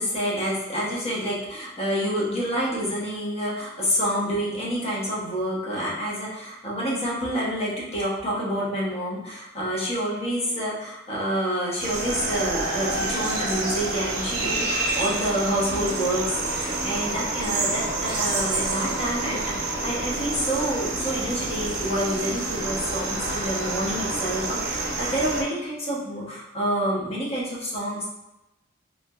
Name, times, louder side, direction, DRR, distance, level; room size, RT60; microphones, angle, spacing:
voice 1, 0.0-28.1, equal, 30° left, -6 dB, 1.0 m, -28 dB
sound 1, 11.8-25.4, right 2 dB, 55° right, 0.6 m, -28 dB
3.5 x 2.8 x 2.3 m, 0.96 s
head